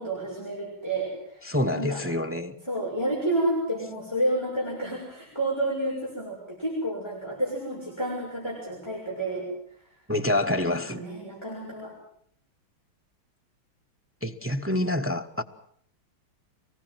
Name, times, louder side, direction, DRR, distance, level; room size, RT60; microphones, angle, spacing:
voice 1, 0.0-2.0 2.6-9.5 10.7-11.9, right 1 dB, 10° left, 6.4 m, -30 dB
voice 2, 1.4-2.5 10.1-11.0 14.2-15.4, left 1 dB, 15° right, 0.4 m, -27 dB
24.5 x 19.5 x 7.8 m
omnidirectional pair, 2.2 m